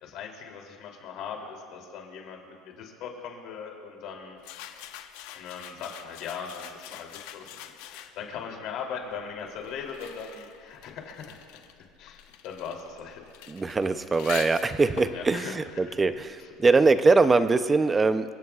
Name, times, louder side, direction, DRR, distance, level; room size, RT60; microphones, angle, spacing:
voice 1, 0.0-4.4 5.3-7.5 7.9-11.4 12.0-13.2 15.1-15.5, left 6 dB, 50° left, 1 dB, 2.9 m, -39 dB
sound 1, 4.4-8.4 9.2-16.6, left 11 dB, 70° left, 0.9 m, -45 dB
voice 2, 13.5-18.3, right 3 dB, 15° right, 11 dB, 0.5 m, -22 dB
28.5 x 16.0 x 2.4 m, 2.5 s
cardioid pair, 160°, 0 cm